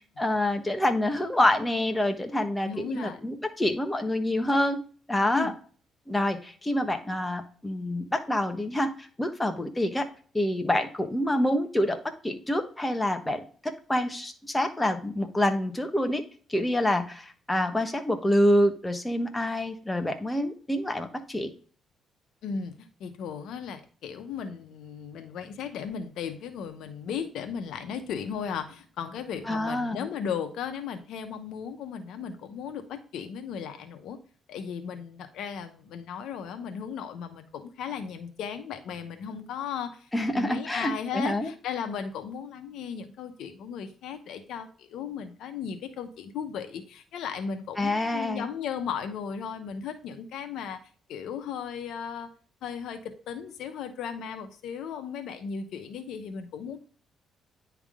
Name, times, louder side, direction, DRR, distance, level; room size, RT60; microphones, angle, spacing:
voice 1, 0.2-4.8 5.1-5.5 6.1-10.1 10.3-12.0 12.2-16.2 16.5-21.5 29.5-30.1 40.1-41.5 47.8-48.5, left 1 dB, 10° left, 6 dB, 1.1 m, -27 dB
voice 2, 2.7-3.2 5.3-5.5 22.4-34.2 34.5-40.1 40.3-50.8 51.1-52.3 52.6-56.8, left 7 dB, 80° left, 8 dB, 0.9 m, -36 dB
10.0 x 3.5 x 3.6 m, 0.42 s
cardioid pair, 90°, 0 cm